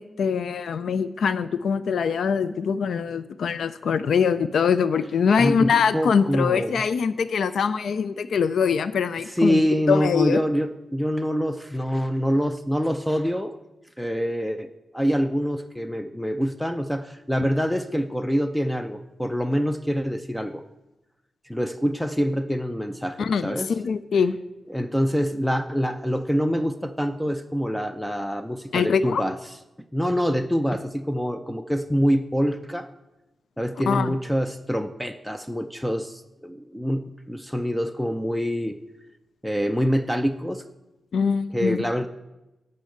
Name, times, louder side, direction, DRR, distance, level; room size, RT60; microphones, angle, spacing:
voice 1, 0.0-9.6 9.9-10.4 23.2-24.4 28.7-29.2 33.9-34.2 41.1-41.8, left 6 dB, 85° left, 14 dB, 0.4 m, -23 dB
voice 2, 5.4-6.8 9.3-13.6 14.0-20.6 21.5-23.7 24.7-29.4 29.9-32.9 33.6-38.8 39.4-40.6 41.5-42.1, equal, 5° left, 9 dB, 0.5 m, -25 dB
10.0 x 5.4 x 8.4 m, 0.98 s
wide cardioid pair, 100°, 0 cm